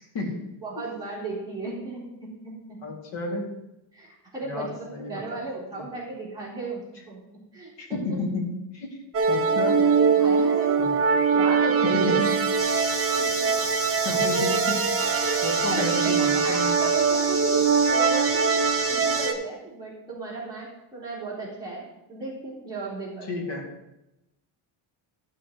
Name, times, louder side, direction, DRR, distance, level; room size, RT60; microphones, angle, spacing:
voice 1, 0.0-0.9 2.8-3.6 4.4-5.4 5.7-5.8 7.8-9.0 9.3-9.9 10.8-11.0 11.8-12.4 14.0-15.0 15.4-16.8 23.3-23.7, left 2 dB, 65° left, -1 dB, 2.4 m, -32 dB
voice 2, 0.6-2.8 3.9-6.8 7.1-7.2 7.5-7.7 8.1-8.2 9.2-9.3 9.7-10.9 11.3-12.3 13.2-13.5 15.7-18.5 18.9-23.5, right 3 dB, 10° right, -9 dB, 3.8 m, -35 dB
sound 1, 9.1-19.3, right 5 dB, 30° right, 0.6 m, -22 dB
sound 2, 12.6-19.3, right 1 dB, 5° left, 1.3 m, -32 dB
14.0 x 7.1 x 3.1 m, 0.91 s
cardioid pair, 170°, 47 cm